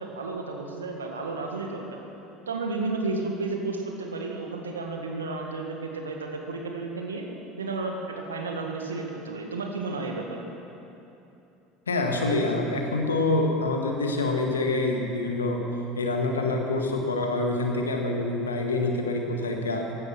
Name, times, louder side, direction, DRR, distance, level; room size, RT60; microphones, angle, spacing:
voice 1, 0.0-2.0 2.5-7.3 7.6-10.4, right 3 dB, 85° right, 1 dB, 1.8 m, -32 dB
voice 2, 11.9-15.6 16.0-19.9, left 2 dB, 85° left, 2 dB, 1.7 m, -26 dB
16.0 x 12.0 x 6.2 m, 2.9 s
hypercardioid pair, 70°, 0 cm